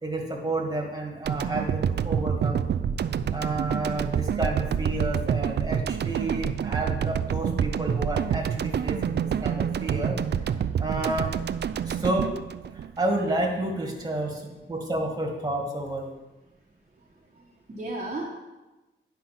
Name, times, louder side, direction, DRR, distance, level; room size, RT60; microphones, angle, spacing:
voice 1, 0.0-2.7 3.3-10.2 10.8-11.3 11.8-12.3 12.7-14.4 14.7-16.1, right 2 dB, 20° right, 0 dB, 1.9 m, -30 dB
sound 1, 1.3-13.5, right 8 dB, 55° right, 0.4 m, -27 dB
voice 2, 16.5-18.3, right 2 dB, 35° right, -4 dB, 1.3 m, -37 dB
10.0 x 5.7 x 5.9 m, 1.1 s
wide cardioid pair, 125°, 21 cm